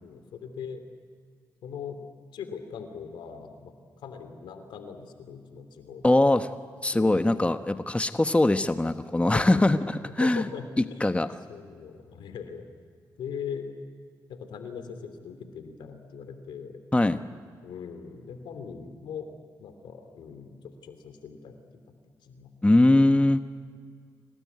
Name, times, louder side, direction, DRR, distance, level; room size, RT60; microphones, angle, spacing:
voice 1, 0.0-0.8 1.6-2.0 2.3-3.7 4.0-6.2 6.9-7.5 9.2-9.6 10.2-11.2 11.5-12.7 13.2-13.7 14.3-16.8 17.6-19.3 19.6-21.6 22.2-22.5 22.9-23.1, left 6 dB, 80° left, 8 dB, 3.0 m, -40 dB
voice 2, 6.0-6.5 6.8-10.4 11.0-11.3 16.9-17.2 22.6-23.4, left 2 dB, 15° left, 9 dB, 1.2 m, -21 dB
26.5 x 18.5 x 9.5 m, 2.1 s
supercardioid pair, 50°, 8 cm